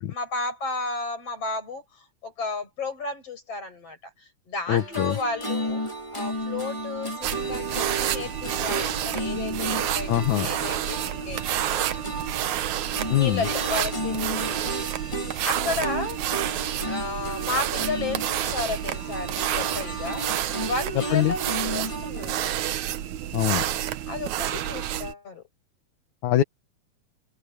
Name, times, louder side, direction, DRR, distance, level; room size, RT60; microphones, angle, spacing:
voice 1, 0.1-1.8 2.2-4.1 4.5-5.8 6.1-11.9 12.2-12.3 12.7-12.8 13.2-14.8 15.4-16.2 16.8-20.2 20.6-22.5 24.1-25.4, left 3 dB, 50° left, 7.9 m, -33 dB
voice 2, 4.7-5.2 10.1-10.5 13.1-13.5 21.1-21.3 23.3-23.6 26.2-26.4, left 12 dB, 80° left, 2.6 m, -22 dB
sound 1, 4.7-22.4, right 1 dB, 10° left, 2.7 m, -33 dB
sound 2, 7.2-25.1, right 12 dB, 75° right, 2.3 m, -29 dB
omnidirectional pair, 3.4 m